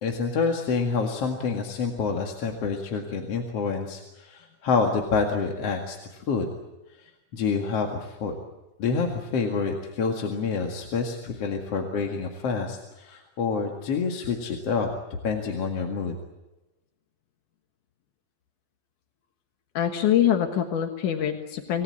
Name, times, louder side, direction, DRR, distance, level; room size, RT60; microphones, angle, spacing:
voice 1, 0.0-6.5 7.0-8.3 8.8-14.9 15.2-16.1, left 5 dB, 55° left, 2 dB, 2.9 m, -27 dB
voice 2, 19.7-21.8, left 10 dB, 80° left, 5 dB, 3.0 m, -24 dB
27.0 x 19.0 x 8.6 m, 1.0 s
omnidirectional pair, 3.6 m